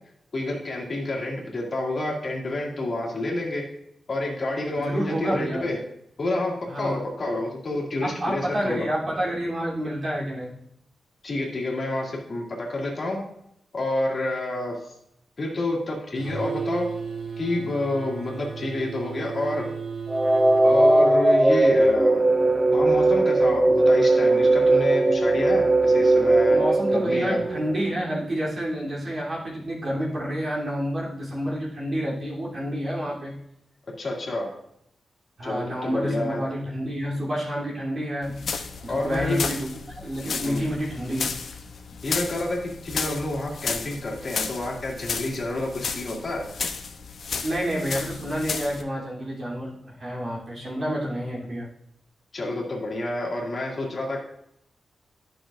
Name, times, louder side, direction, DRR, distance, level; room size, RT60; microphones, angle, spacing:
voice 1, 0.3-3.6 4.1-5.8 6.2-8.9 11.2-13.2 13.7-14.9 15.4-16.9 17.4-19.7 20.6-22.3 22.7-27.5 34.0-34.5 35.4-36.4 38.9-39.4 40.4-40.6 42.0-46.5 52.3-54.2, left 2 dB, 45° left, -2 dB, 2.2 m, -29 dB
voice 2, 4.8-5.6 6.7-7.0 8.0-10.6 26.5-33.3 35.4-38.4 38.8-41.3 47.4-51.7, equal, 45° right, -6 dB, 3.0 m, -29 dB
sound 1, 16.2-21.1, right 5 dB, 75° right, 3.4 m, -34 dB
sound 2, 20.1-28.1, right 2 dB, 5° right, 0.6 m, -19 dB
sound 3, 38.2-48.8, left 5 dB, 65° left, 0.7 m, -33 dB
11.0 x 6.3 x 2.5 m, 0.76 s
wide cardioid pair, 120°, 0 cm